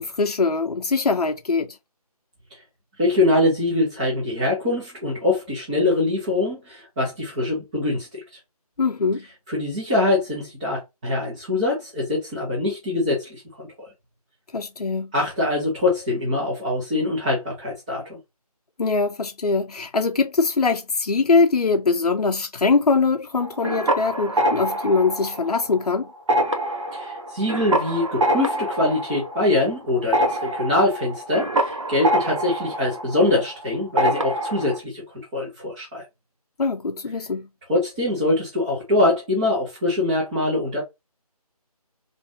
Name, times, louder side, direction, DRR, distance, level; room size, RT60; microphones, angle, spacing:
voice 1, 0.0-1.8 8.8-9.2 14.5-15.1 18.8-26.1 36.6-37.5, left 4 dB, 75° left, 0.5 m, -22 dB
voice 2, 3.0-8.2 9.5-13.4 15.1-18.2 26.9-35.0 35.3-36.0 37.7-40.8, left 2 dB, 10° right, 0.9 m, -23 dB
sound 1, 23.4-25.9 26.2-33.6 34.0-34.8, right 1 dB, 50° right, 0.9 m, -25 dB
4.0 x 2.6 x 2.7 m
figure-of-eight pair, 160°, 20 cm